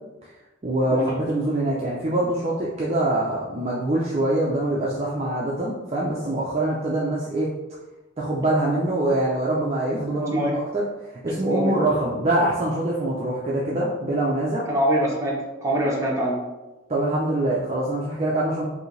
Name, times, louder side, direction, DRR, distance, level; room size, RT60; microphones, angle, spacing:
voice 1, 0.6-7.5 8.2-10.5 10.7-10.8 11.2-14.6 16.9-18.7, right 1 dB, 30° right, -5 dB, 0.5 m, -24 dB
voice 2, 11.3-11.7 14.7-16.4, equal, 15° right, -4 dB, 0.9 m, -24 dB
4.7 x 2.7 x 3.2 m, 1.1 s
head